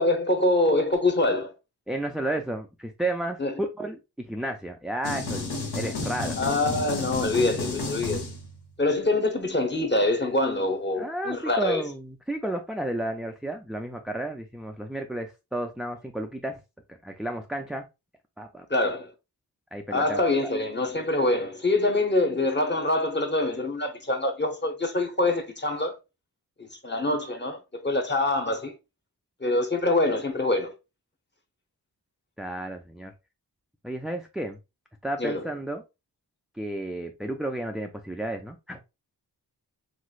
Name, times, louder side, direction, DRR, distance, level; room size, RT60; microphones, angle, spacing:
voice 1, 0.0-1.5 3.4-3.5 6.4-8.2 8.8-11.8 18.7-19.1 19.9-26.0 26.8-28.7 29.4-30.7 35.2-35.4, left 2 dB, 25° left, 0.9 m, -25 dB
voice 2, 1.9-4.0 4.3-6.4 11.0-16.6 17.0-17.9 18.4-18.7 19.7-20.5 32.4-33.1 33.8-34.6 35.0-35.8 36.6-38.8, right 1 dB, ahead, 0.4 m, -32 dB
sound 1, 5.0-8.7, left 3 dB, 70° left, 1.1 m, -31 dB
3.1 x 3.1 x 2.3 m
cardioid pair, 50°, 41 cm